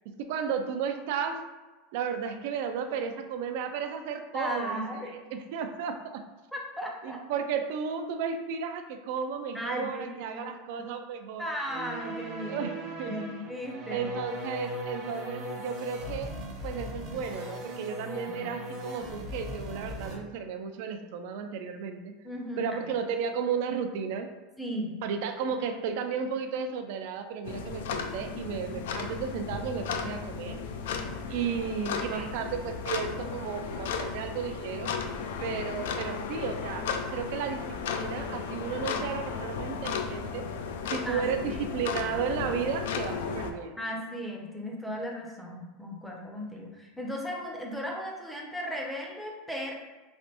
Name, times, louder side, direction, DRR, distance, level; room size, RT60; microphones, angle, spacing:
voice 1, 0.1-1.4 1.9-5.0 5.3-6.3 7.0-11.4 12.5-13.1 13.9-16.4 16.6-22.1 22.6-24.3 25.0-30.6 31.3-34.9 35.4-36.9 37.1-40.4 40.9-43.8, right 6 dB, 65° right, 7 dB, 0.3 m, -33 dB
voice 2, 4.3-5.2 6.5-7.2 9.5-10.4 10.8-10.9 11.4-12.7 13.1-14.2 18.3-18.6 22.2-22.7 24.6-25.0 32.1-32.3 41.0-41.7 43.8-49.7, equal, ahead, -1 dB, 0.5 m, -36 dB
sound 1, 11.7-20.2, equal, 40° right, 0.7 m, -38 dB
sound 2, 27.4-43.5, left 5 dB, 85° left, 0.3 m, -35 dB
3.2 x 2.5 x 2.8 m, 1.2 s
supercardioid pair, 145°, 0 cm